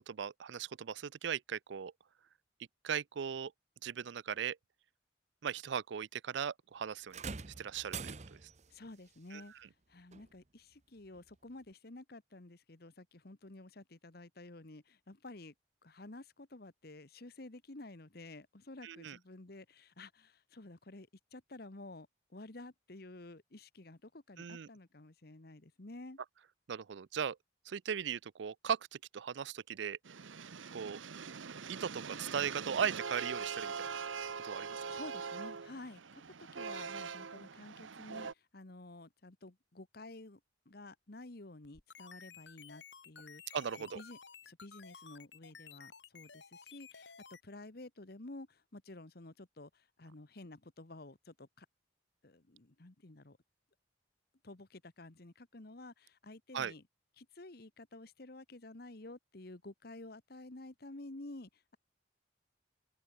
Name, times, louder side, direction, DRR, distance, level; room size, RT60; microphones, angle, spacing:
voice 1, 0.0-1.9 2.8-3.5 3.8-4.6 5.4-7.2 7.6-8.1 9.3-9.4 18.8-19.2 24.4-24.7 26.7-27.4 27.7-30.0 30.7-31.0 31.7-33.9 34.4-34.7 43.5-44.0 56.5-56.7, right 7 dB, 70° right, 0.4 m, -38 dB
sound 1, 7.1-8.7 10.1-10.3 11.1-11.2, right 5 dB, 35° right, 0.8 m, -44 dB
voice 2, 8.7-15.5 15.8-26.2 34.9-40.4 40.6-44.2 44.4-51.7 52.2-53.4 54.4-56.8 57.2-61.8, left 2 dB, 55° left, 1.3 m, -51 dB
sound 2, 30.0-38.3, right 6 dB, 90° right, 0.9 m, -43 dB
sound 3, 41.6-47.4, left 6 dB, 70° left, 4.1 m, -54 dB
open air
head